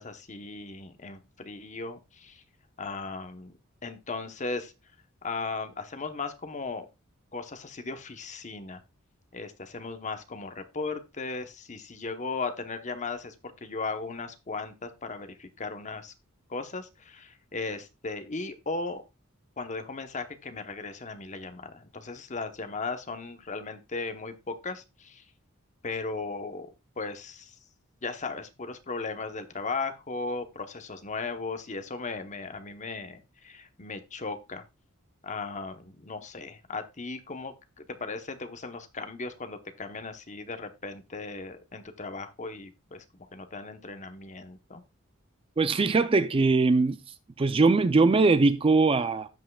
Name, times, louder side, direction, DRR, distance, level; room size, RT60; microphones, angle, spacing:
voice 1, 0.0-2.4 2.8-3.6 3.8-4.7 5.2-6.9 7.3-8.8 9.3-16.1 16.5-19.0 19.6-25.2 25.8-26.7 27.0-27.5 28.0-34.6 35.2-44.8, left 3 dB, 35° left, 0.9 m, -37 dB
voice 2, 45.6-47.0 47.4-49.3, right 3 dB, 25° right, 0.4 m, -21 dB
15.5 x 5.6 x 2.3 m
head